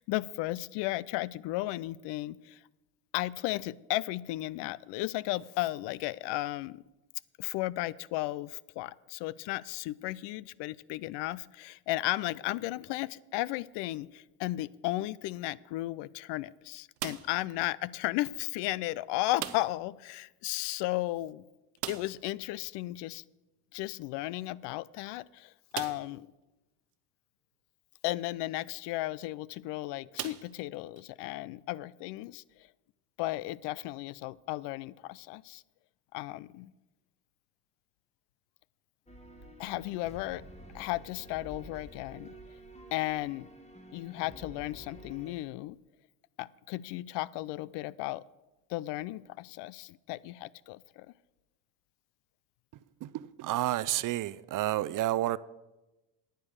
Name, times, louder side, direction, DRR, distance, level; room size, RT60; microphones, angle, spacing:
voice 1, 0.0-2.6 3.1-6.8 7.4-21.4 21.9-23.2 23.7-26.3 28.0-32.4 33.2-35.6 36.1-36.7 39.6-40.5 40.7-42.4 42.9-43.5 43.9-45.8 46.4-48.2 48.7-51.1, left 17 dB, 65° left, 0.6 m, -35 dB
sound 1, 17.0-17.5 19.4-19.9 20.2-20.3 20.6-20.7 21.8-22.3 24.1-24.2 24.8-24.9 25.7-26.2 26.9-27.0 29.0-29.3 30.1-31.0, right 13 dB, 90° right, 0.8 m, -40 dB
sound 2, 39.1-45.3, right 1 dB, 15° left, 1.9 m, -50 dB
voice 2, 53.0-55.4, right 15 dB, 45° right, 0.5 m, -30 dB
9.4 x 9.2 x 6.5 m
hypercardioid pair, 70°, 46 cm